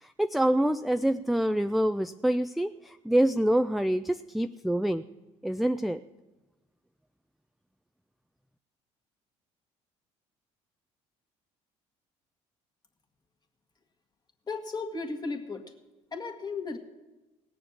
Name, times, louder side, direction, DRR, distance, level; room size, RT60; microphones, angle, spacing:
voice 1, 0.0-5.0 5.4-6.0, right 1 dB, ahead, 10 dB, 0.4 m, -26 dB
voice 2, 14.5-15.7 16.1-16.8, left 4 dB, 30° left, 4 dB, 1.9 m, -35 dB
17.5 x 7.0 x 7.3 m, 1.1 s
supercardioid pair, 70°, 14 cm